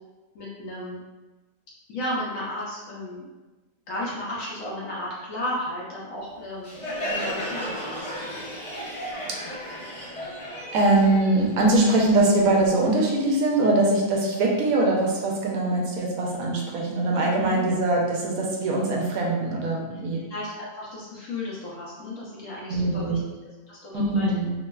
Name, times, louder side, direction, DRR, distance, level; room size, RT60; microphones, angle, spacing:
voice 1, 0.3-1.0 1.9-3.2 3.9-8.1 17.3-17.7 20.3-23.2 23.7-24.3, left 1 dB, 70° left, -6 dB, 0.8 m, -34 dB
Crowd, 6.6-12.1, equal, 40° left, 0.4 m, -34 dB
voice 2, 9.7-10.0 10.7-20.2 22.7-23.2 23.9-24.5, right 2 dB, 70° right, -2 dB, 0.9 m, -22 dB
3.0 x 2.1 x 2.2 m, 1.2 s
omnidirectional pair, 1.9 m